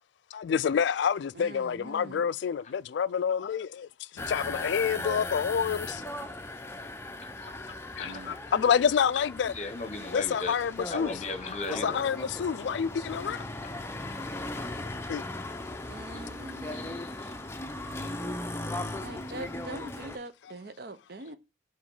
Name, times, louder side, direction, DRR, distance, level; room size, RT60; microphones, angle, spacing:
voice 1, 0.3-3.9 4.1-6.0 8.0-9.5 10.1-11.1 11.7-13.4 15.1-15.2, left 7 dB, 65° left, 0.3 m, -28 dB
voice 2, 1.3-2.3 8.0-8.6 15.9-17.0 19.0-21.4, right 2 dB, 55° right, 0.7 m, -43 dB
sound 1, 4.2-20.2, left 2 dB, 15° left, 0.6 m, -38 dB
voice 3, 9.5-10.5 10.9-12.0 16.1-16.2 16.7-17.3, left 3 dB, 35° left, 1.0 m, -37 dB
5.1 x 4.0 x 5.4 m
head